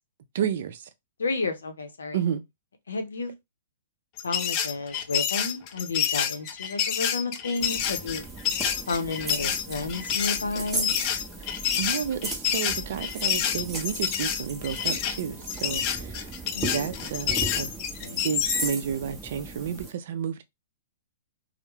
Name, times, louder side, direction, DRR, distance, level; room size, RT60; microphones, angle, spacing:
voice 1, 0.3-0.9 2.1-2.4 11.4-16.3 16.7-17.7 18.2-20.4, right 8 dB, 60° right, 0.4 m, -31 dB
voice 2, 1.2-2.2 2.9-3.3 4.2-8.2 8.9-10.9 16.5-16.7 17.0-17.1 18.0-18.2, left 3 dB, 80° left, 0.6 m, -31 dB
sound 1, 4.2-18.7, left 9 dB, 40° left, 0.4 m, -28 dB
sound 2, 7.6-19.9, right 3 dB, 10° right, 0.6 m, -37 dB
2.3 x 2.0 x 3.0 m
hypercardioid pair, 120°, 0 cm